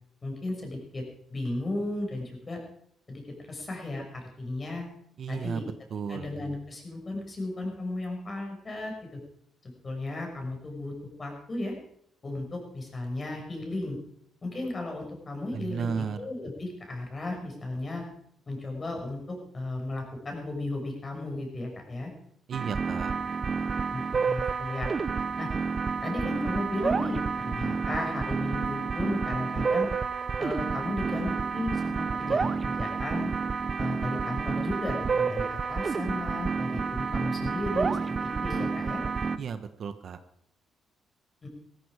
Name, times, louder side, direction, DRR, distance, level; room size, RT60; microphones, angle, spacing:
voice 1, 0.2-1.0 1.3-2.6 3.1-3.2 3.5-4.9 5.3-5.6 6.1-9.2 9.6-10.9 11.2-11.7 12.2-14.0 14.4-18.1 18.5-22.1 23.9-24.9 25.4-25.5 26.0-29.9 30.4-33.3 33.8-39.0 41.4-41.5, left 2 dB, 30° left, 2 dB, 6.3 m, -35 dB
voice 2, 5.2-5.6 5.9-6.3 15.5-16.2 22.5-23.1 39.4-40.2, right 6 dB, 55° right, 10 dB, 1.2 m, -33 dB
sound 1, 22.5-39.4, right 5 dB, 35° right, 0.9 m, -29 dB
16.0 x 14.5 x 4.9 m, 0.70 s
cardioid pair, 90°, 0 cm